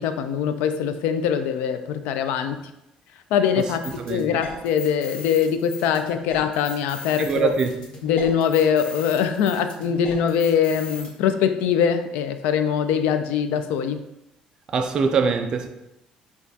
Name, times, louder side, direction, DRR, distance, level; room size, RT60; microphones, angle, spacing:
voice 1, 0.0-2.6 3.3-7.5 8.0-14.0, left 8 dB, 85° left, 0.4 m, -22 dB
sound 1, 3.6-11.1, left 5 dB, 35° left, 1.2 m, -38 dB
voice 2, 4.0-4.4 7.2-7.8 14.7-15.7, right 5 dB, 35° right, 0.3 m, -23 dB
6.4 x 2.3 x 2.7 m
cardioid pair, 180°, 2 cm